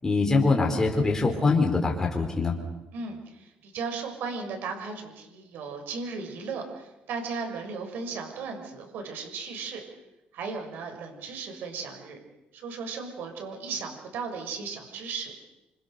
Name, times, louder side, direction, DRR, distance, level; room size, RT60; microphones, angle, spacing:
voice 1, 0.0-2.6, left 3 dB, 15° left, 0 dB, 4.3 m, -23 dB
voice 2, 2.9-9.8 10.3-12.2 12.5-15.3, right 4 dB, 75° right, 4 dB, 6.5 m, -36 dB
27.0 x 26.5 x 6.9 m, 0.95 s
cardioid pair, 140°, 3 cm